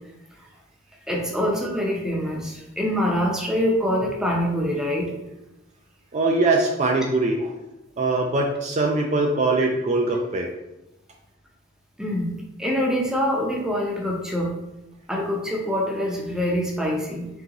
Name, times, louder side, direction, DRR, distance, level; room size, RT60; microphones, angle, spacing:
voice 1, 1.1-5.1 12.0-14.5 15.1-17.3, equal, 5° right, -2 dB, 0.7 m, -25 dB
voice 2, 6.1-7.5 8.0-10.5, right 2 dB, 35° right, 1 dB, 0.4 m, -22 dB
3.8 x 3.8 x 2.9 m, 0.94 s
head